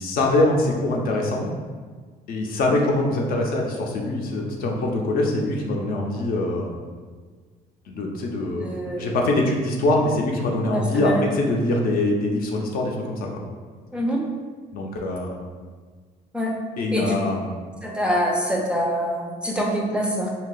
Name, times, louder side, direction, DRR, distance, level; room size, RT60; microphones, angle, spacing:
voice 1, 0.0-1.5 2.3-6.7 7.9-13.3 14.7-15.4 16.8-17.6, left 2 dB, 60° left, 0 dB, 0.6 m, -23 dB
voice 2, 8.6-9.1 10.7-11.3 13.9-14.2 16.3-16.5 16.9-17.2 17.8-20.4, equal, 5° right, -1 dB, 0.4 m, -25 dB
2.7 x 2.3 x 3.8 m, 1.5 s
cardioid pair, 110°, 17 cm